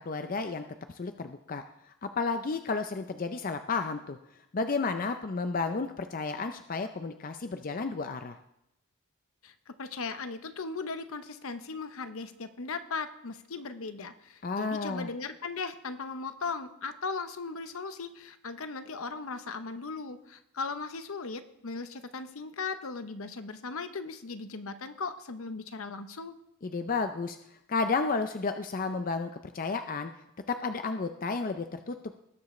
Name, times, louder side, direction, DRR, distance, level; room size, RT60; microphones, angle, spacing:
voice 1, 0.0-1.6 2.0-4.2 4.5-8.4 14.4-15.1 26.6-27.4 27.7-30.1 30.5-31.9, left 4 dB, 40° left, 8 dB, 0.5 m, -32 dB
voice 2, 9.4-26.4, left 4 dB, 65° left, 10 dB, 0.8 m, -38 dB
19.0 x 7.3 x 3.2 m, 0.83 s
head